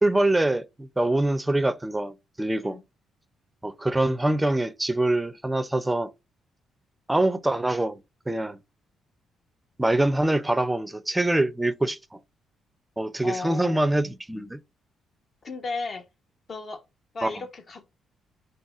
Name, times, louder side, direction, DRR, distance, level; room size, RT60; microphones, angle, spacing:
voice 1, 0.0-2.8 3.6-6.1 7.1-8.6 9.8-12.2 13.0-14.6 17.2-17.4, right 1 dB, 10° right, 0.5 m, -24 dB
voice 2, 13.2-13.8 15.4-16.1 16.5-16.8 17.1-17.9, left 3 dB, 45° left, 0.9 m, -34 dB
4.0 x 3.9 x 2.4 m
cardioid pair, 90°, 0 cm